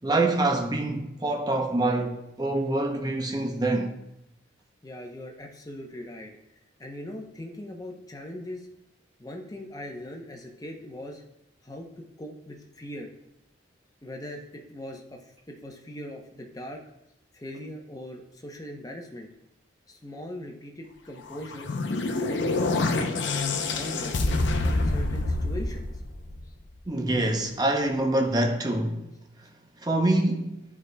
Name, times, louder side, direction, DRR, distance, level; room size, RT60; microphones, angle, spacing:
voice 1, 0.0-3.9 26.9-29.1 29.8-30.6, right 2 dB, 20° right, 0.6 m, -25 dB
voice 2, 4.8-6.3 6.8-8.7 9.2-11.2 11.6-13.1 14.0-16.8 17.3-19.3 19.9-21.7 22.2-25.9, left 1 dB, 20° left, 0.7 m, -40 dB
sound 1, 21.3-26.6, left 2 dB, 70° left, 0.6 m, -27 dB
10.5 x 4.7 x 2.2 m
head